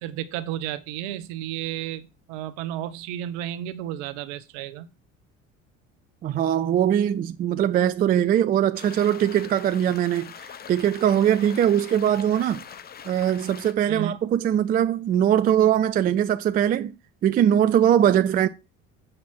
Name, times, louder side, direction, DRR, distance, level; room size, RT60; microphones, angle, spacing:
voice 1, 0.0-4.9 13.9-14.1, right 12 dB, 60° right, 0.9 m, -32 dB
voice 2, 6.2-10.3 10.7-12.6 13.1-16.9 17.2-18.5, right 10 dB, 25° right, 0.4 m, -21 dB
sound 1, 8.7-13.7, left 8 dB, 25° left, 0.7 m, -42 dB
7.6 x 5.5 x 4.5 m
figure-of-eight pair, 60°, 40 cm